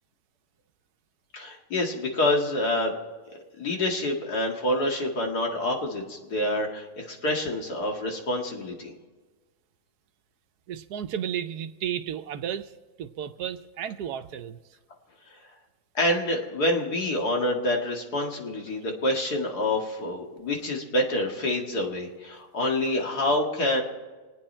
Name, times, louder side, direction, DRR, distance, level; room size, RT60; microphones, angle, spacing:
voice 1, 1.3-3.0 3.6-8.9 15.3-15.4 15.9-23.8, left 1 dB, 75° left, 0 dB, 2.6 m, -27 dB
voice 2, 10.7-12.7 13.0-14.6, right 9 dB, 75° right, 10 dB, 1.2 m, -33 dB
27.5 x 9.5 x 4.4 m, 1.3 s
omnidirectional pair, 1.7 m